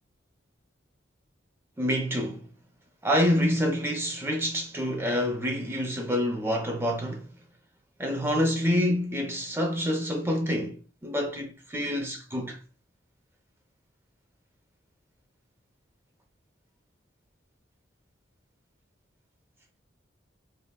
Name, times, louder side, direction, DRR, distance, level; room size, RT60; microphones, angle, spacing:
voice 1, 1.8-2.4 3.0-7.3 8.0-12.6, equal, 10° right, 0.4 m, -27 dB
3.4 x 2.0 x 2.2 m
head